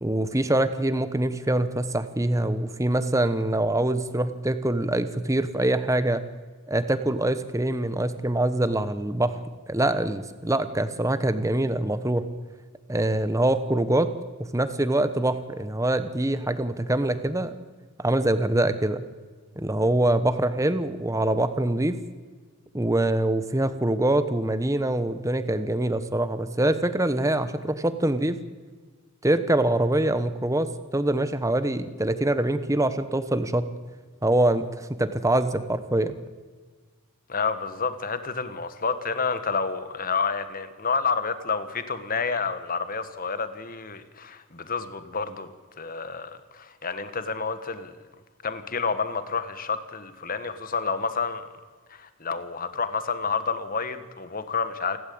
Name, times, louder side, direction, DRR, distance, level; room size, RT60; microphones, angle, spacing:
voice 1, 0.0-6.2 6.7-9.4 9.7-12.2 12.9-14.1 14.4-17.5 18.0-19.0 19.6-21.9 22.7-28.4 29.2-33.7 34.2-36.2, right 1 dB, 15° right, 11 dB, 1.0 m, -24 dB
voice 2, 37.3-45.5 45.8-47.9 48.4-51.4 51.9-55.0, left 5 dB, 40° left, 11 dB, 1.6 m, -29 dB
28.5 x 12.5 x 8.7 m, 1.4 s
head